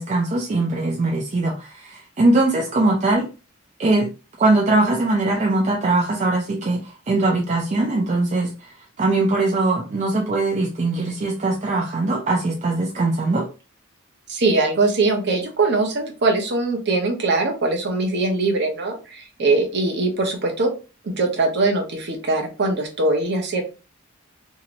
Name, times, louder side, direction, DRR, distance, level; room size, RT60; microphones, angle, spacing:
voice 1, 0.0-3.3 3.8-4.1 4.4-13.5, right 2 dB, 35° right, 0 dB, 0.4 m, -21 dB
voice 2, 14.3-20.7 21.0-23.6, right 3 dB, 55° right, 3 dB, 0.8 m, -21 dB
2.9 x 2.8 x 2.5 m, 0.32 s
head